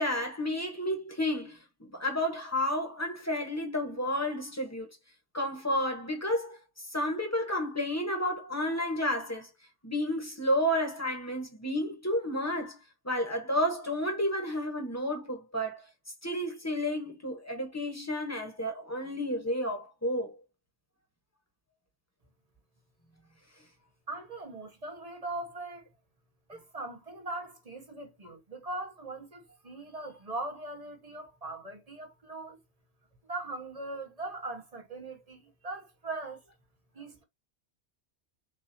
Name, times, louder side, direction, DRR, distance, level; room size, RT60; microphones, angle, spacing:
voice 1, 0.0-4.9 5.3-9.5 9.8-12.8 13.0-15.8 16.2-20.4, left 1 dB, 15° left, 1.2 m, -31 dB
voice 2, 24.1-25.8 26.5-32.6 33.3-36.4 36.9-37.2, right 2 dB, 35° right, 1.1 m, -40 dB
6.3 x 2.7 x 2.8 m
omnidirectional pair, 1.2 m